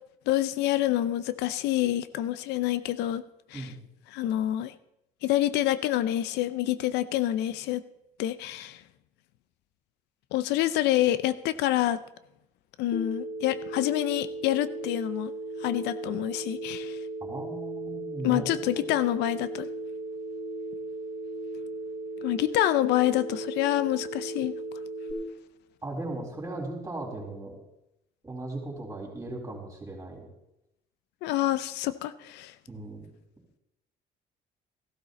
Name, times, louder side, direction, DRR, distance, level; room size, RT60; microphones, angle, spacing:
voice 1, 0.3-3.2 3.5-3.7 4.1-4.7 5.2-7.8 8.2-8.8 10.3-12.0 12.8-15.3 15.6-17.0 18.2-19.7 22.2-24.5 31.2-32.5, left 14 dB, 85° left, 14 dB, 0.6 m, -27 dB
Telephone, 12.9-25.1, right 2 dB, 55° left, 2.9 m, -36 dB
voice 2, 17.2-18.9 25.8-27.6 28.2-30.3 32.7-33.1, right 2 dB, 20° right, 0 dB, 4.1 m, -37 dB
15.0 x 12.5 x 4.1 m, 0.86 s
cardioid pair, 110°, 17 cm